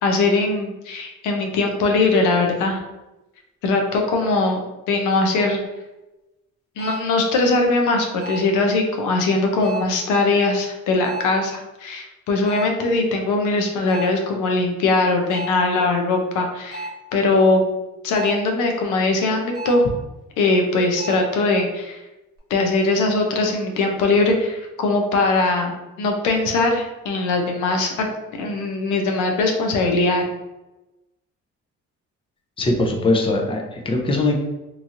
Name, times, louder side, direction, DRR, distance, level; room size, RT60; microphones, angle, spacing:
voice 1, 0.0-2.8 3.6-4.6 4.9-5.6 6.8-17.6 18.0-19.9 20.4-22.0 22.5-25.7 26.0-28.1 28.4-30.2, left 3 dB, 90° left, 3 dB, 0.6 m, -20 dB
sound 1, 5.7-5.8 6.8-7.2 8.2-8.6 9.6-10.0 11.0-11.4 12.5-12.9 13.9-14.3 15.3-15.7 16.7-17.1 18.1-18.5 19.5-20.0 21.0-21.3, right 1 dB, 50° right, 1.0 m, -33 dB
voice 2, 32.6-34.4, left 2 dB, 20° left, 2 dB, 0.5 m, -21 dB
3.0 x 2.6 x 2.5 m, 1.0 s
cardioid pair, 90°, 30 cm